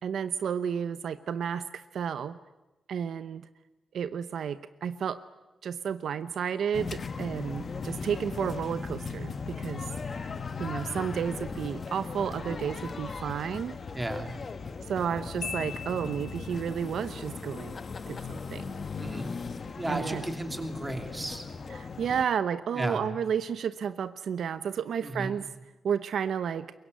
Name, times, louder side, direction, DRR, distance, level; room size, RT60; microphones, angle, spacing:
voice 1, 0.0-2.4 2.9-3.5 3.9-5.2 5.6-10.3 10.6-13.8 14.9-17.8 18.1-18.8 19.9-20.3 21.7-25.5 25.8-26.7, right 7 dB, 75° right, 13 dB, 0.8 m, -32 dB
sound 1, 6.7-22.2, left 5 dB, 40° left, 1.2 m, -38 dB
voice 2, 13.9-14.3 19.0-19.3 19.8-21.4 22.7-23.0 25.0-25.4, right 1 dB, 15° right, 6 dB, 2.8 m, -34 dB
Marimba xylophone, 15.4-16.8, left 8 dB, 90° left, 1.7 m, -40 dB
23.0 x 22.5 x 9.4 m, 1.1 s
wide cardioid pair, 160°, 0 cm